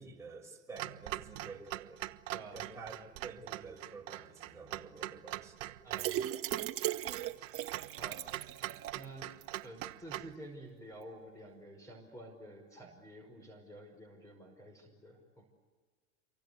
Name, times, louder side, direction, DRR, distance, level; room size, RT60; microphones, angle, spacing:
voice 1, 0.0-2.1 2.5-5.8, right 4 dB, 5° right, -1 dB, 5.9 m, -50 dB
Clock, 0.8-10.3, right 15 dB, 70° right, 1.0 m, -43 dB
voice 2, 2.3-2.7 5.8-6.3 8.0-8.2 8.9-9.3 9.6-15.4, right 1 dB, 10° left, 4 dB, 5.3 m, -50 dB
sound 1, 5.9-9.0 9.4-9.5 9.8-9.9, right 12 dB, 35° right, 1.3 m, -37 dB
27.5 x 24.0 x 8.3 m, 1.5 s
hypercardioid pair, 105°, 40 cm